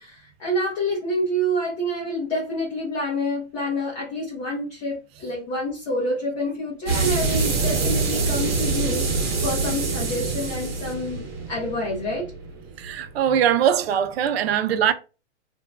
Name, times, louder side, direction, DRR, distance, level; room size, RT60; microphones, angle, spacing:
voice 1, 0.0-11.2 11.5-12.3, equal, 25° left, 0.6 m, -27 dB
sound 1, 6.9-13.3, right 4 dB, 40° right, 1.0 m, -25 dB
voice 2, 12.8-14.9, right 9 dB, 60° right, 0.5 m, -21 dB
2.5 x 2.2 x 3.2 m
hypercardioid pair, 160°, 35 cm